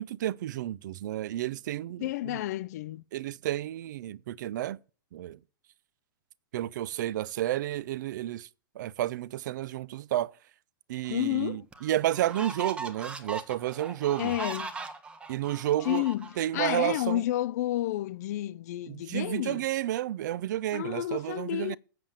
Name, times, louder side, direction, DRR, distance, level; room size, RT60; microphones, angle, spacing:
voice 1, 0.0-2.4 3.1-4.8 5.1-5.4 6.5-8.5 8.8-10.3 10.9-14.3 15.3-16.0 16.4-17.2 18.9-21.8, right 13 dB, 55° right, 0.4 m, -31 dB
voice 2, 2.0-3.0 11.1-11.7 14.2-14.7 15.8-19.6 20.7-21.8, left 14 dB, 45° left, 0.4 m, -31 dB
sound 1, 11.1-11.2 11.7-16.7, right 4 dB, 10° right, 0.7 m, -39 dB
7.5 x 7.3 x 6.5 m
supercardioid pair, 160°, 12 cm